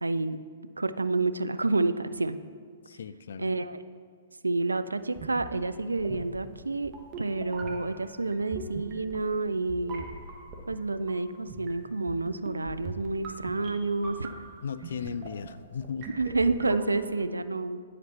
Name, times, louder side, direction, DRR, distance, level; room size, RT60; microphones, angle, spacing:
voice 1, 0.0-0.4 0.8-2.4 3.4-3.8 4.4-10.1 10.7-14.4 16.1-17.8, right 3 dB, 90° right, 12 dB, 0.3 m, -29 dB
voice 2, 2.9-3.5 14.6-16.1, left 6 dB, 65° left, 14 dB, 0.3 m, -36 dB
sound 1, 5.1-17.2, right 3 dB, 35° right, 1.0 m, -43 dB
9.4 x 5.1 x 4.1 m, 2.1 s
figure-of-eight pair, 120°, 0 cm